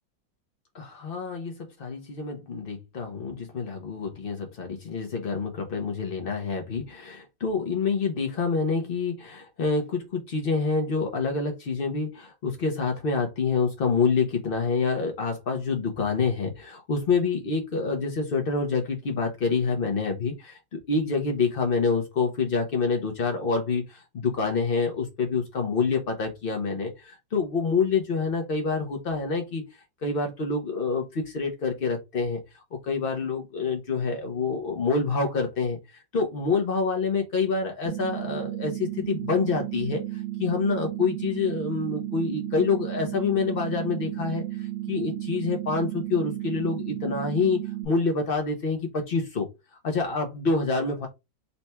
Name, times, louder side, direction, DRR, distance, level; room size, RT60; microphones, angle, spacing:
voice 1, 0.7-29.6 30.0-32.4 32.8-49.5 49.8-51.1, left 4 dB, 75° left, 0.5 m, -27 dB
sound 1, 37.9-47.9, right 15 dB, 70° right, 1.0 m, -33 dB
4.1 x 2.2 x 4.1 m
omnidirectional pair, 2.0 m